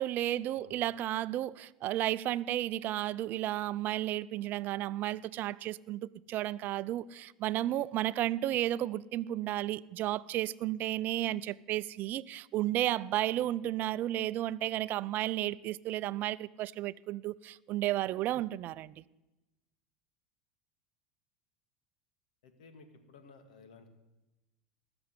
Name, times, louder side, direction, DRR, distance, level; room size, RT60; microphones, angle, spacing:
voice 1, 0.0-18.9, right 14 dB, 50° right, 0.5 m, -33 dB
voice 2, 22.4-23.9, left 4 dB, 80° left, 2.2 m, -56 dB
19.0 x 7.1 x 9.7 m
hypercardioid pair, 90°, 4 cm